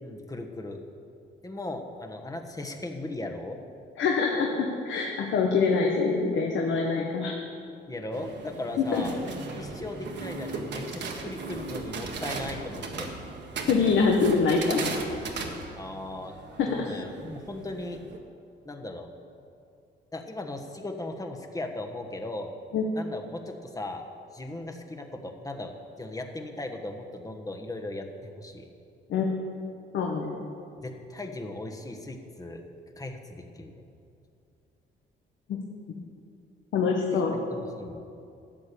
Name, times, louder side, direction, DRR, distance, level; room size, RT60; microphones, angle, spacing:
voice 1, 0.0-0.8 1.4-3.6 7.9-9.2 9.6-13.1 15.8-16.4 16.7-18.0 18.6-19.1 20.1-22.5 22.9-24.0 24.3-25.7 26.0-28.7 30.8-32.6 33.0-33.8 37.1-38.0, left 2 dB, 15° left, 3 dB, 1.4 m, -37 dB
voice 2, 4.0-7.3 8.8-9.0 13.7-14.9 16.6-16.7 22.7-22.8 29.1-29.3 29.9-30.3 35.5-35.6 36.7-37.3, left 5 dB, 75° left, 0 dB, 1.3 m, -24 dB
sound 1, 8.1-18.2, right 3 dB, 60° right, 1.6 m, -37 dB
13.0 x 8.5 x 6.9 m, 2.5 s
cardioid pair, 90°, 20 cm